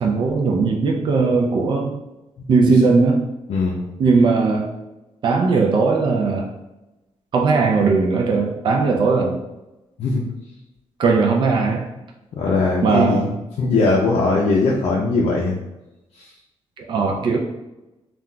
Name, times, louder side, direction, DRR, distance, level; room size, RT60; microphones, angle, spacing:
voice 1, 0.0-2.0 2.5-3.2 4.0-4.7 5.2-6.5 7.3-9.4 11.0-11.9 12.8-13.3 16.8-17.4, right 4 dB, 45° right, 0 dB, 0.4 m, -18 dB
voice 2, 2.4-2.7 3.5-3.8 10.0-10.2 12.4-13.2 13.6-15.6, left 3 dB, 65° left, -4 dB, 0.5 m, -20 dB
3.8 x 2.3 x 2.2 m, 0.98 s
cardioid pair, 135°, 11 cm